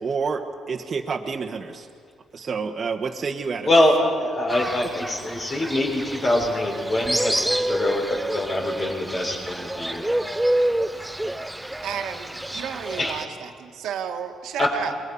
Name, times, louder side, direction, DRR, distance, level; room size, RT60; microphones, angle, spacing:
voice 1, 0.0-1.9 2.3-3.7, right 5 dB, 45° right, 1 dB, 1.5 m, -28 dB
voice 2, 3.6-10.1 13.0-13.2 14.6-14.7, left 1 dB, 40° left, -1 dB, 6.7 m, -24 dB
Fowl, 4.5-13.2, right 1 dB, 5° right, 0.6 m, -28 dB
voice 3, 11.8-14.9, right 8 dB, 80° right, 4 dB, 1.8 m, -32 dB
28.5 x 22.5 x 5.6 m, 2.2 s
cardioid pair, 90°, 0 cm